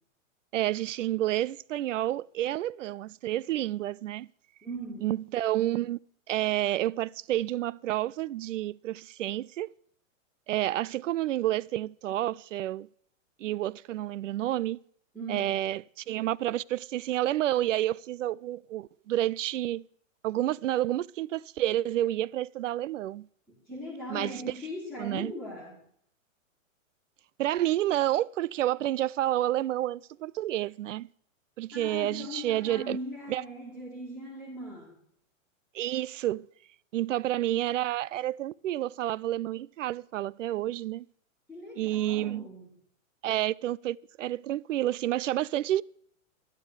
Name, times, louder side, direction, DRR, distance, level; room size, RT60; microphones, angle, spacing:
voice 1, 0.5-4.3 5.0-6.0 6.3-9.7 10.5-12.9 13.4-14.8 15.3-19.8 20.2-23.3 24.1-24.4 25.0-25.3 27.4-31.1 31.6-33.0 33.3-33.4 35.7-36.5 36.9-41.1 41.8-42.4 43.2-45.8, right 13 dB, 65° right, 0.5 m, -29 dB
voice 2, 4.6-5.1 15.1-15.7 23.7-25.8 31.7-35.0 41.5-42.7, equal, ahead, 2.1 m, -39 dB
12.5 x 10.5 x 7.9 m
hypercardioid pair, 175°, 40 cm